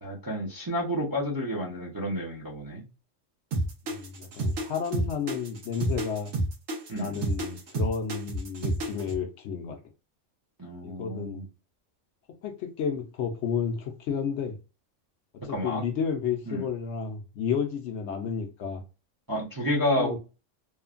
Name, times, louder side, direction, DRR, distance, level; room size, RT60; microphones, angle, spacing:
voice 1, 0.0-2.8 6.9-7.2 10.6-11.5 15.5-15.8 16.5-16.7 19.3-20.2, equal, 25° right, 0.5 m, -30 dB
sound 1, 3.5-9.2, right 2 dB, 80° right, 1.2 m, -29 dB
voice 2, 3.9-6.3 6.9-9.8 10.8-11.4 12.4-14.6 15.5-18.8 19.8-20.2, left 6 dB, 70° left, 0.8 m, -31 dB
3.1 x 2.1 x 2.4 m
omnidirectional pair, 1.3 m